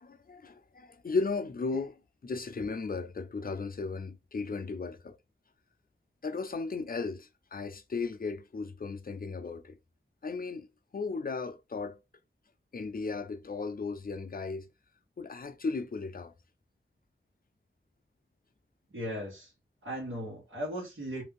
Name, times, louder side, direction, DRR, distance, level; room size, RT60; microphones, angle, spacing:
voice 1, 0.0-5.2 6.2-9.8 10.2-10.7 10.9-12.0 12.7-14.7 15.2-16.3, left 4 dB, 45° left, 0.5 m, -35 dB
voice 2, 18.9-19.5 19.8-21.2, equal, 80° right, 1.2 m, -37 dB
2.6 x 2.2 x 3.5 m
wide cardioid pair, 50°, 21 cm